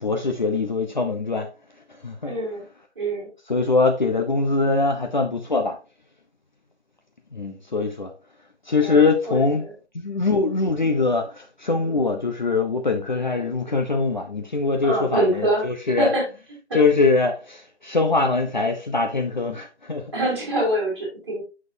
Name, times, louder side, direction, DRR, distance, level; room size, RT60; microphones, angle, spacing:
voice 1, 0.0-1.5 2.0-2.3 3.5-5.8 7.3-8.1 8.7-9.7 9.9-16.1 16.7-20.0, left 3 dB, 40° left, 1.0 m, -22 dB
voice 2, 2.2-2.6 2.9-3.3 8.8-9.7 14.8-15.7 16.0-16.2 16.7-16.8 20.1-21.4, right 1 dB, 25° right, 4.6 m, -25 dB
9.2 x 6.2 x 2.7 m
figure-of-eight pair, 165°, 34 cm